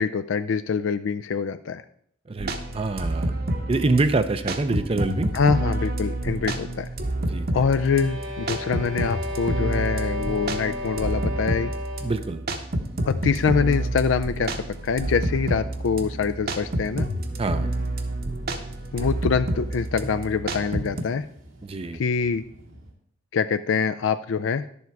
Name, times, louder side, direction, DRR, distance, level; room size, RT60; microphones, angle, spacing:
voice 1, 0.0-1.8 5.3-6.9 7.5-11.7 13.1-14.5 14.8-17.1 18.9-21.3 21.9-22.4 23.3-24.6, left 5 dB, 75° left, 11 dB, 0.4 m, -24 dB
voice 2, 2.3-3.3 3.7-5.3 7.3-7.7 12.0-12.4 17.4-17.7 21.6-22.0, right 3 dB, 30° right, 10 dB, 0.5 m, -26 dB
sound 1, 2.4-21.0, right 1 dB, 50° right, 1.0 m, -29 dB
sound 2, 7.6-12.3, left 1 dB, 70° right, 1.7 m, -34 dB
sound 3, 13.1-22.9, right 1 dB, 85° right, 1.8 m, -48 dB
11.0 x 7.2 x 4.6 m, 0.65 s
head